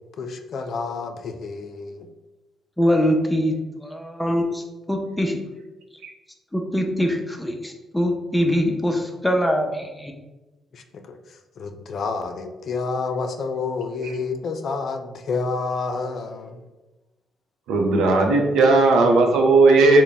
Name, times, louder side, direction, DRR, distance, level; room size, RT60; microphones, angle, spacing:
voice 1, 0.2-2.1 10.7-11.2 11.6-16.6, left 4 dB, 60° left, 5 dB, 0.4 m, -29 dB
voice 2, 2.8-3.5 3.8-5.4 6.5-10.1, equal, 5° left, 3 dB, 0.5 m, -23 dB
voice 3, 17.7-20.0, right 3 dB, 85° right, 2 dB, 0.6 m, -16 dB
3.4 x 2.1 x 4.0 m, 1.1 s
cardioid pair, 90°, 0 cm